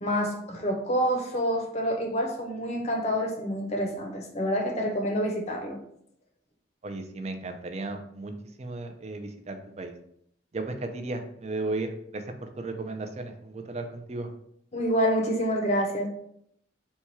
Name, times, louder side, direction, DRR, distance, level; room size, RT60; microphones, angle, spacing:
voice 1, 0.0-5.8 14.7-16.1, equal, 35° left, 2 dB, 0.7 m, -27 dB
voice 2, 6.8-9.9 10.5-14.3, right 2 dB, 35° right, 6 dB, 0.5 m, -35 dB
4.2 x 2.3 x 4.4 m, 0.71 s
head